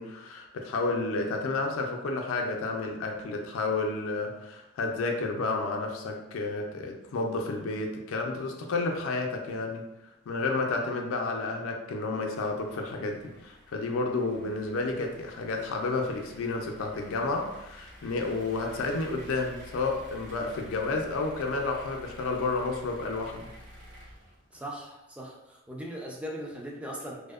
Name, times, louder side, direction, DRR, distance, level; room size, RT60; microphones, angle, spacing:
voice 1, 0.0-9.8 10.3-23.5, left 3 dB, 70° left, 2 dB, 0.4 m, -31 dB
sound 1, 12.4-24.7, equal, 55° right, 0.7 m, -50 dB
voice 2, 24.5-27.3, equal, 5° right, -2 dB, 0.3 m, -39 dB
2.6 x 2.0 x 2.3 m, 0.92 s
head